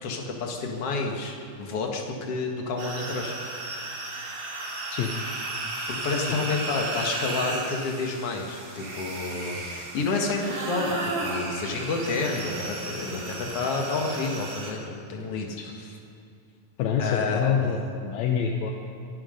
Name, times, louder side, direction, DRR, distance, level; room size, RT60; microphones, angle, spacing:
voice 1, 0.0-3.4 5.9-15.9 17.0-17.8, left 3 dB, 50° left, 1 dB, 2.3 m, -30 dB
sound 1, 2.8-14.7, right 2 dB, 65° right, 3.9 m, -34 dB
voice 2, 16.8-18.7, left 7 dB, 70° left, 2 dB, 1.8 m, -26 dB
23.5 x 11.5 x 5.2 m, 2.4 s
omnidirectional pair, 4.0 m